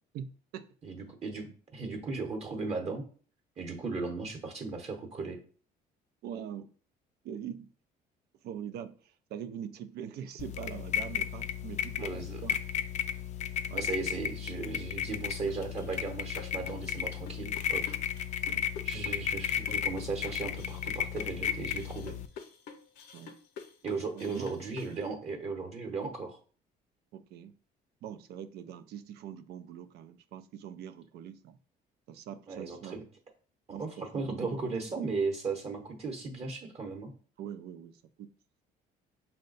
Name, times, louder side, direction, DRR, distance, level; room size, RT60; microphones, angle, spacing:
voice 1, 0.1-0.7 6.2-6.7 7.2-7.7 8.4-12.5 13.7-13.9 18.5-18.7 19.2-19.3 23.1-23.4 24.1-24.5 27.1-27.5 28.0-31.6 32.1-33.0 33.7-34.6 37.4-38.3, right 9 dB, 75° right, 0.4 m, -43 dB
voice 2, 0.8-3.0 3.6-5.4 12.0-12.4 13.7-17.8 18.8-22.2 23.8-26.4 32.5-33.0 33.7-37.1, right 4 dB, 40° right, 0.9 m, -36 dB
sound 1, 10.4-22.3, left 9 dB, 45° left, 0.4 m, -34 dB
sound 2, 15.5-25.0, left 6 dB, 80° left, 0.7 m, -47 dB
5.5 x 2.2 x 3.8 m
cardioid pair, 110°, 17 cm